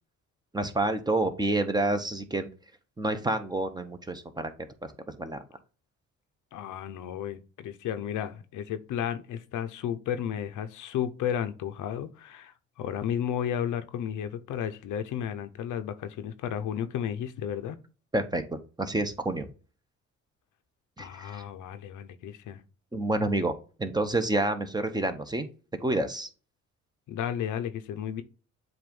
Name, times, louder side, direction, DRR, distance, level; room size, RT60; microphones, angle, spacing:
voice 1, 0.5-2.5 3.0-4.5 4.8-4.9 5.2-5.4 18.1-19.5 21.0-21.4 22.9-25.5 25.8-26.3, right 2 dB, 15° right, 1.0 m, -28 dB
voice 2, 6.5-17.8 21.0-22.6 27.1-28.2, left 9 dB, 80° left, 0.8 m, -33 dB
7.7 x 2.6 x 5.2 m
cardioid pair, 90°, 30 cm